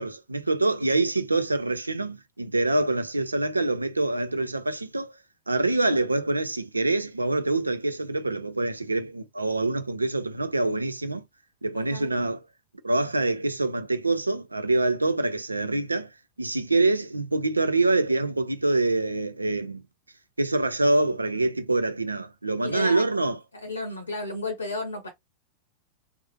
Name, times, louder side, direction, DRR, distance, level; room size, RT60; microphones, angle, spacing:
voice 1, 0.0-5.1 5.5-11.2 11.6-12.4 12.8-16.1 16.4-19.8 20.4-23.4, right 2 dB, 80° right, 0.4 m, -25 dB
voice 2, 11.7-12.1 22.6-23.0 23.5-25.1, left 2 dB, 75° left, 0.7 m, -33 dB
3.1 x 2.0 x 2.9 m
figure-of-eight pair, 90°, 0 cm